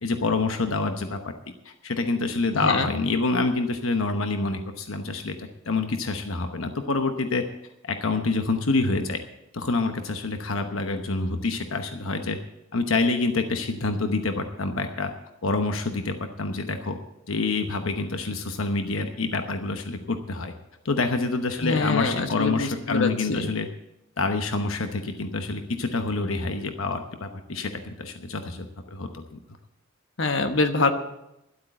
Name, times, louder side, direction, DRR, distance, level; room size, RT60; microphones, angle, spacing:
voice 1, 0.0-1.3 1.6-7.4 7.8-9.2 9.5-12.4 12.7-15.1 15.4-17.0 17.3-20.5 20.8-23.7 24.2-29.4, left 3 dB, 90° left, 6 dB, 1.0 m, -27 dB
voice 2, 2.5-2.9 21.6-23.5 30.2-30.9, left 3 dB, 65° left, 7 dB, 1.2 m, -25 dB
12.5 x 8.3 x 7.7 m, 0.88 s
head